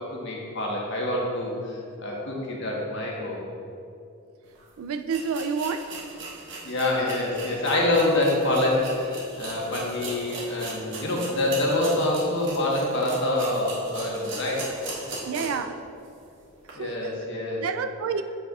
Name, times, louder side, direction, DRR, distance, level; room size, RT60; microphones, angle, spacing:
voice 1, 0.0-3.4 6.6-14.7 16.7-17.6, left 1 dB, 60° left, -3 dB, 1.3 m, -26 dB
sound 1, 4.5-4.6 5.1-15.7 16.1-16.2 16.6-16.7, right 2 dB, 60° right, 1.2 m, -38 dB
voice 2, 4.8-6.0 15.3-15.8 16.7-17.1 17.6-18.2, right 5 dB, 75° right, 9 dB, 0.4 m, -29 dB
7.8 x 6.5 x 2.4 m, 2.6 s
head